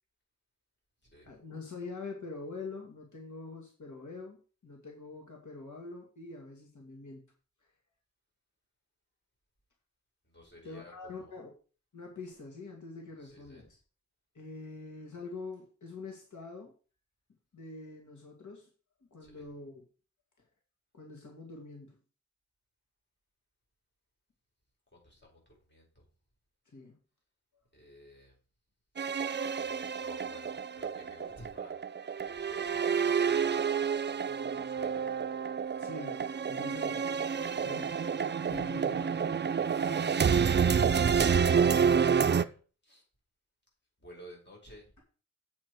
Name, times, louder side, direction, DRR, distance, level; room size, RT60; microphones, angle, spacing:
voice 1, 1.2-7.2 10.6-11.5 11.9-13.8 14.3-16.7 17.5-18.7 19.1-19.8 20.9-22.0 26.7-27.0 35.8-37.1 37.6-38.0 38.5-39.2, left 3 dB, 85° left, 1 dB, 2.1 m, -45 dB
voice 2, 10.2-11.3 13.2-13.7 19.2-19.4 24.9-26.0 27.7-28.3 29.5-31.8 32.2-33.8 34.5-35.1 37.4-37.7 38.4-39.1 39.7-40.7 41.7-42.5 42.8-43.0 44.0-45.0, left 1 dB, 40° left, -2 dB, 4.9 m, -54 dB
sound 1, 29.0-42.4, right 6 dB, 40° right, 0.4 m, -29 dB
8.1 x 7.0 x 4.6 m, 0.37 s
wide cardioid pair, 115°, 29 cm